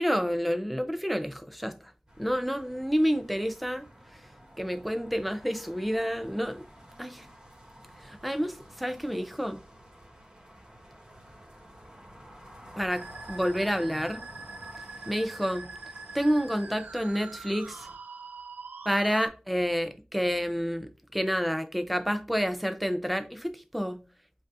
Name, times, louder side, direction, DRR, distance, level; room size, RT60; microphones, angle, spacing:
voice 1, 0.0-1.8 2.2-3.8 4.6-6.6 7.0-7.2 8.0-9.6 12.8-14.2 15.1-15.7 16.1-17.9 18.9-24.0, equal, ahead, 0.5 m, -29 dB
sound 1, 2.1-18.0, equal, 25° right, 1.7 m, -51 dB
Musical instrument, 12.9-19.3, right 4 dB, 90° right, 0.4 m, -44 dB
7.6 x 2.7 x 2.5 m
wide cardioid pair, 60°, 3 cm